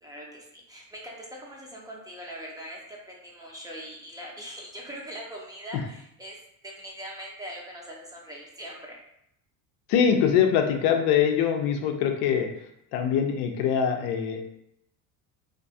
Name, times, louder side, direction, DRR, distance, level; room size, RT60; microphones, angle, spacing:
voice 1, 0.0-6.4 6.6-9.0, equal, 10° right, -3 dB, 0.6 m, -41 dB
voice 2, 9.9-12.5 12.9-14.4, left 8 dB, 65° left, 4 dB, 0.6 m, -23 dB
2.5 x 2.3 x 2.6 m, 0.77 s
supercardioid pair, 105°, 41 cm